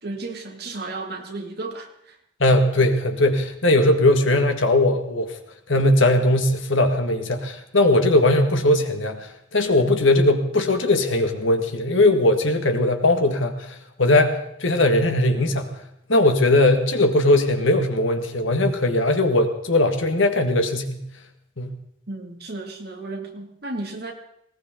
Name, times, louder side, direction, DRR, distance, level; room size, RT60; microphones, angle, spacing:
voice 1, 0.0-2.2 22.1-24.1, right 2 dB, 50° right, 2 dB, 2.4 m, -33 dB
voice 2, 2.4-5.3 5.7-15.7 16.1-21.0 21.6-21.7, left 1 dB, 70° left, 5 dB, 1.9 m, -19 dB
19.5 x 18.5 x 3.9 m, 0.75 s
head